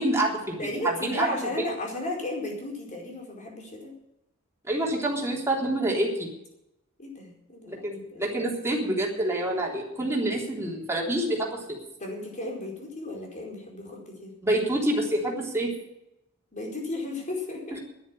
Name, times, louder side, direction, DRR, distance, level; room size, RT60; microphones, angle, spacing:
voice 1, 0.0-0.6 1.0-1.3 4.7-6.3 7.7-11.8 14.4-15.7 17.7-17.8, right 1 dB, 15° right, -2 dB, 3.5 m, -27 dB
voice 2, 0.6-4.0 7.0-7.8 8.1-8.2 12.0-14.3 16.5-17.8, left 2 dB, 35° left, 0 dB, 4.7 m, -34 dB
11.0 x 10.0 x 9.8 m, 0.85 s
head